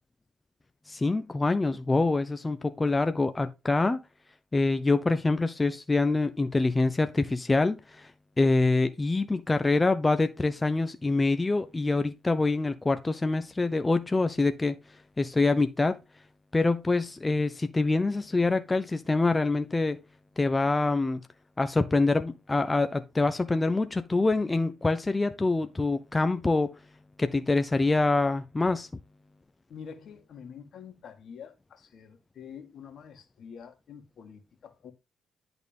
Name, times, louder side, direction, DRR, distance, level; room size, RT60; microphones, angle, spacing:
voice 1, 0.9-4.0 4.5-8.1 8.4-14.8 15.2-16.0 16.5-20.0 20.4-21.2 21.6-26.8 27.2-28.9, left 3 dB, 20° left, 0.8 m, -25 dB
voice 2, 29.7-34.9, left 7 dB, 65° left, 1.9 m, -46 dB
10.5 x 4.1 x 5.3 m
supercardioid pair, 65°, 0 cm